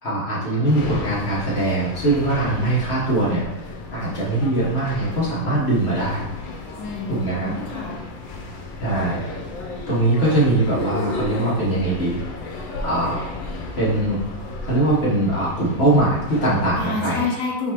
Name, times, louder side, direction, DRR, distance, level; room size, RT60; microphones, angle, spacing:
voice 1, 0.0-3.4 3.9-6.3 7.1-7.5 8.8-9.2 9.9-12.2 12.8-13.2 13.8-14.2 14.6-17.2, right 2 dB, 35° left, -8 dB, 1.5 m, -21 dB
sound 1, 0.6-16.8, left 3 dB, 90° left, 1.4 m, -33 dB
voice 2, 6.8-8.0 16.8-17.7, left 4 dB, 60° left, -2 dB, 1.1 m, -28 dB
4.4 x 4.0 x 3.0 m, 1.0 s
omnidirectional pair, 2.0 m